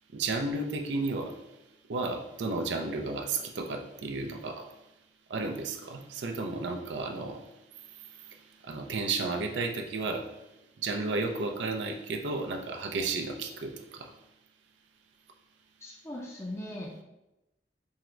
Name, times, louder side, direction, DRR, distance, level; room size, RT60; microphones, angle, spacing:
voice 1, 0.1-1.3 1.9-4.7 5.3-7.4 8.7-10.2 10.8-14.1, right 3 dB, 85° right, 3 dB, 0.5 m, -32 dB
voice 2, 15.8-17.0, left 1 dB, 15° left, -3 dB, 0.4 m, -39 dB
3.6 x 2.0 x 4.3 m, 0.94 s
head